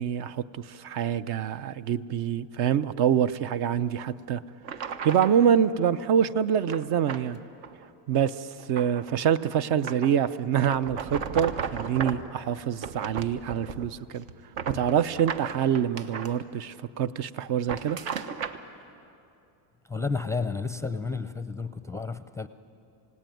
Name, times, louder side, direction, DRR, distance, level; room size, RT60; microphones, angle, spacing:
voice 1, 0.0-4.4 5.0-7.4 8.1-14.2 14.7-18.0, right 8 dB, 60° right, 13 dB, 0.8 m, -26 dB
sound 1, 4.0-4.1 4.6-5.4 6.7-7.2 7.6-7.9 8.3-9.1 9.8-10.2 10.7-12.3 12.8-14.0 14.3-16.3 17.5-18.6, right 6 dB, 75° right, 1.4 m, -35 dB
voice 2, 19.8-22.5, left 4 dB, 5° left, 11 dB, 0.5 m, -31 dB
28.0 x 17.5 x 9.2 m, 2.7 s
cardioid pair, 120°, 44 cm